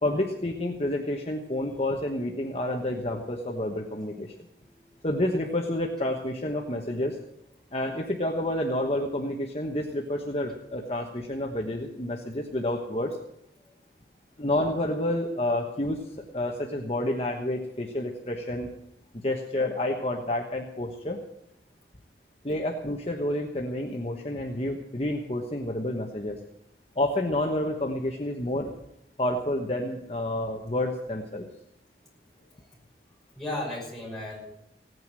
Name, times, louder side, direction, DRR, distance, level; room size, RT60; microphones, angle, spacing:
voice 1, 0.0-4.3 5.0-7.2 7.7-13.2 14.4-18.7 19.2-21.2 22.4-26.4 26.9-28.7 29.2-31.5, left 1 dB, 35° left, 1 dB, 1.2 m, -29 dB
voice 2, 32.3-32.8 33.3-34.5, left 1 dB, ahead, -4 dB, 5.7 m, -36 dB
17.5 x 9.4 x 7.5 m, 0.80 s
head